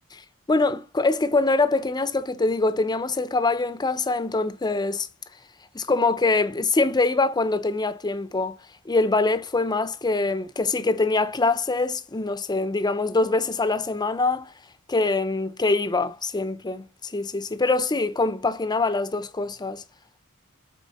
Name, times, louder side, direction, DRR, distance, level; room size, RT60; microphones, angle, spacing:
voice 1, 0.5-5.1 5.7-8.6 8.9-14.5 14.9-19.8, left 3 dB, 20° left, 0.6 m, -24 dB
8.2 x 3.8 x 4.1 m
head